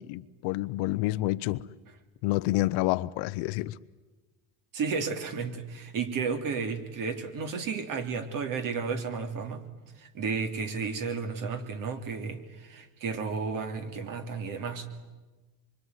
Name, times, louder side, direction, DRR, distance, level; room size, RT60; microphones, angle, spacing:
voice 1, 0.0-1.7 2.2-3.8, left 18 dB, 70° left, 0.9 m, -28 dB
voice 2, 4.7-9.7 10.0-14.9, right 5 dB, 45° right, 3.2 m, -33 dB
25.5 x 24.0 x 9.6 m
supercardioid pair, 120°, 44 cm